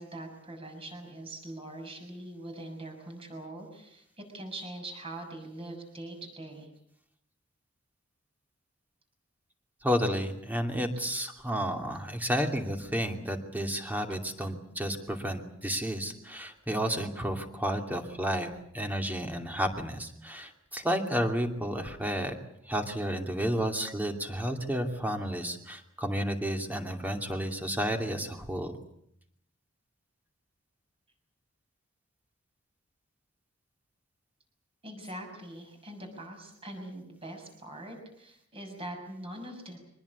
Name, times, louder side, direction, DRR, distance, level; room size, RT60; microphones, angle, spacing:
voice 1, 0.0-6.7 34.8-39.8, right 1 dB, 30° right, 4 dB, 6.5 m, -43 dB
voice 2, 9.8-22.4 22.6-28.8, equal, 10° right, 4 dB, 2.7 m, -31 dB
25.0 x 20.0 x 8.5 m, 0.72 s
head